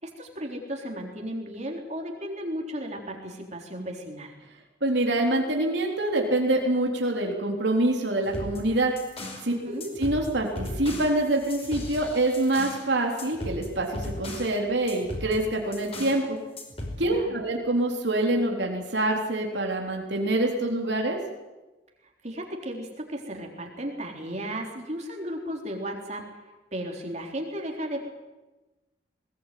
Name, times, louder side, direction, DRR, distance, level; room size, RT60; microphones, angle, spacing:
voice 1, 0.0-4.3 9.5-9.9 17.0-17.4 22.0-26.2 26.7-28.1, equal, 40° right, 1 dB, 3.7 m, -35 dB
voice 2, 4.8-8.9 9.4-9.5 10.0-16.4 17.0-21.2, right 1 dB, 70° right, 1 dB, 3.6 m, -25 dB
sound 1, 8.2-9.5 9.8-12.8 13.2-14.5 14.9-16.2 16.6-17.0, left 1 dB, 35° left, 5.2 m, -37 dB
21.0 x 19.5 x 9.3 m, 1.1 s
head